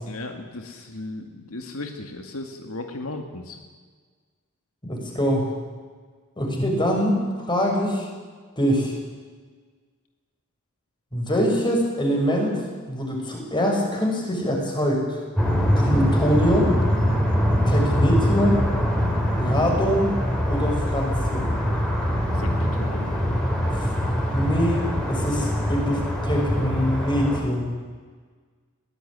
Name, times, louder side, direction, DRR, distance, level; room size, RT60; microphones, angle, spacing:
voice 1, 0.1-3.6 22.3-23.1, left 2 dB, 80° left, 5 dB, 2.1 m, -36 dB
voice 2, 4.8-5.5 6.4-8.1 8.6-9.0 11.1-12.6 12.9-15.2 15.7-16.7 17.6-18.6 19.4-20.1 20.5-21.5 23.8-23.9 24.3-27.6, equal, 20° left, 0 dB, 6.5 m, -23 dB
sound 1, 15.4-27.4, equal, 5° left, 4.8 m, -23 dB
21.5 x 17.5 x 10.0 m, 1.5 s
head